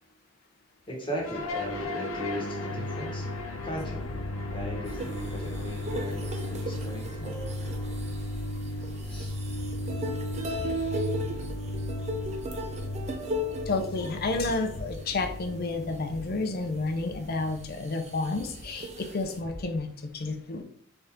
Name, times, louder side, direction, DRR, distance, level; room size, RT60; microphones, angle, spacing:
voice 1, 0.9-3.3 3.6-4.0 4.5-7.4 9.0-9.3, equal, 25° left, -2 dB, 1.3 m, -37 dB
sound 1, 1.2-19.5, left 1 dB, 90° left, 0.7 m, -36 dB
sound 2, 4.9-16.2 16.7-16.8 17.2-19.4, equal, 35° right, 0.5 m, -37 dB
voice 2, 13.7-19.9 20.1-20.6, left 3 dB, 50° left, 5 dB, 0.6 m, -30 dB
4.0 x 3.4 x 3.6 m, 0.64 s
head